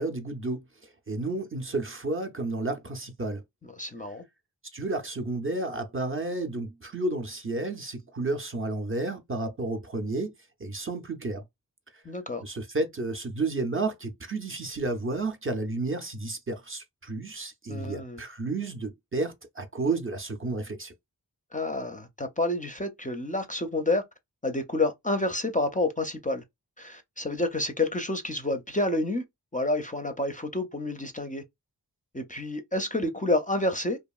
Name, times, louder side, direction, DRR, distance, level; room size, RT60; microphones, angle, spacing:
voice 1, 0.0-3.4 4.7-10.3 10.6-11.4 11.9-12.0 12.4-20.9, right 2 dB, 35° right, 0.5 m, -31 dB
voice 2, 3.8-4.2 12.0-12.4 17.7-18.2 21.5-24.0 24.4-26.4 26.8-29.2 29.5-31.4 32.1-34.0, left 2 dB, 20° left, 0.4 m, -29 dB
2.8 x 2.4 x 2.3 m
wide cardioid pair, 70°, 40 cm